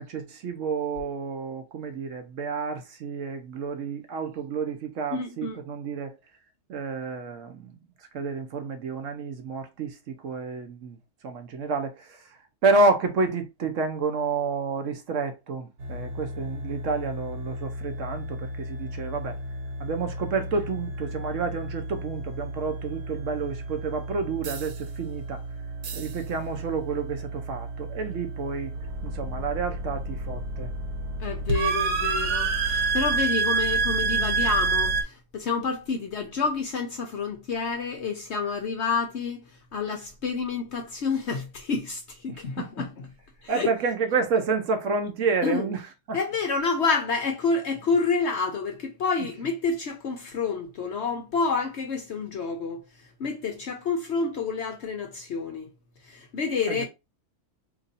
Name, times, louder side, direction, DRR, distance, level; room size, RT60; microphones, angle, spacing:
voice 1, 0.0-6.2 6.7-7.7 8.1-11.0 11.2-12.2 12.6-19.4 19.8-25.4 25.9-28.7 29.0-30.7 42.3-42.6 43.5-45.8 46.1-46.2 56.7-56.8, right 4 dB, 65° right, 0.9 m, -29 dB
voice 2, 5.1-5.6 31.2-39.4 39.7-43.1 43.4-43.7 45.4-45.7 46.1-52.8 53.2-55.7 56.0-56.8, left 4 dB, 60° left, 0.7 m, -28 dB
sound 1, 15.8-35.0, right 3 dB, 85° right, 1.3 m, -30 dB
2.9 x 2.6 x 3.9 m
omnidirectional pair, 1.6 m